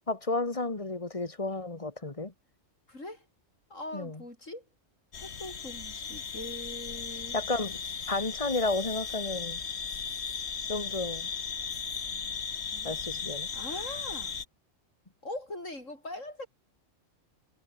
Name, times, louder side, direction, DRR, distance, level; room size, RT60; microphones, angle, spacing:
voice 1, 0.1-2.3 3.9-4.2 7.3-7.8 8.1-9.6 10.7-11.3 12.8-13.5, left 3 dB, 25° left, 2.0 m, -32 dB
voice 2, 2.9-3.3 3.7-4.6 5.2-7.4 12.7-13.0 13.5-14.4 15.2-16.5, left 1 dB, 85° left, 7.6 m, -41 dB
sound 1, 5.1-14.4, left 6 dB, 60° left, 1.6 m, -36 dB
omnidirectional pair, 1.3 m